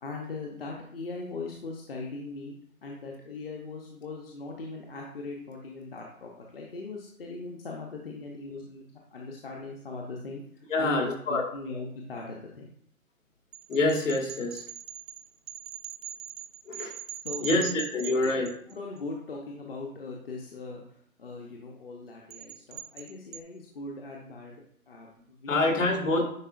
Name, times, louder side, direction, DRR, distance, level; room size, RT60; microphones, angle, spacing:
voice 1, 0.0-2.5 2.8-8.9 9.1-12.7 17.2-18.3 18.7-20.8 21.2-25.6 26.2-26.3, left 3 dB, 40° left, -1 dB, 0.9 m, -40 dB
voice 2, 10.7-11.4 13.7-14.7 16.7-16.9 17.4-18.5 25.5-26.3, left 2 dB, 60° left, 1 dB, 2.0 m, -26 dB
sound 1, 13.5-19.0 22.3-23.4, right 11 dB, 65° right, 0.6 m, -41 dB
9.7 x 4.1 x 2.6 m, 0.64 s
hypercardioid pair, 155°, 43 cm